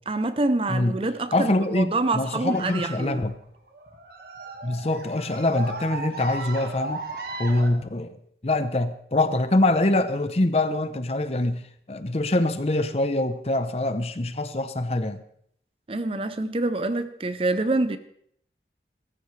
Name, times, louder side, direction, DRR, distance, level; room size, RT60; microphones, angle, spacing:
voice 1, 0.1-3.2 15.9-18.0, right 2 dB, 30° right, 0.6 m, -26 dB
voice 2, 0.7-1.0 1.3-3.4 4.6-7.0 7.4-8.2 8.4-15.2, left 2 dB, 35° left, 0.7 m, -24 dB
sound 1, 2.5-7.7, right 3 dB, 60° right, 1.7 m, -36 dB
16.5 x 13.5 x 3.3 m
head